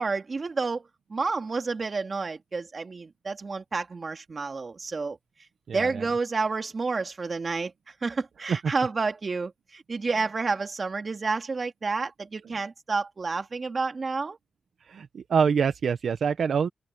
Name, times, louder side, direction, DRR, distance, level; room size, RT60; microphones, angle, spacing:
voice 1, 0.0-5.2 5.7-7.7 8.0-14.4, right 4 dB, 45° right, 2.4 m, -30 dB
voice 2, 5.7-6.1 8.5-8.7 14.9-16.7, right 6 dB, 75° right, 1.0 m, -25 dB
cardioid pair, 85°, 0 cm